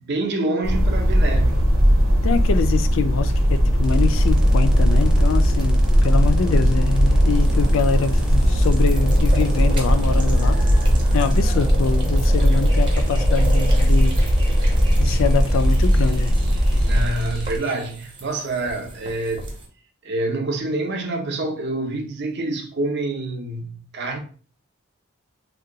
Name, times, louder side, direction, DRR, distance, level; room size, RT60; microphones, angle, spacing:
voice 1, 0.1-1.6 16.8-19.5 20.0-24.2, right 2 dB, 55° right, 0.6 m, -27 dB
sound 1, 0.6-17.1, equal, 80° right, 0.8 m, -18 dB
voice 2, 2.2-10.6 11.1-14.2 15.0-16.3, left 5 dB, 65° left, 0.3 m, -24 dB
sound 2, 3.8-17.6, equal, 5° right, 0.5 m, -29 dB
sound 3, 7.3-19.7, right 2 dB, 25° right, 0.8 m, -37 dB
2.7 x 2.1 x 3.7 m
head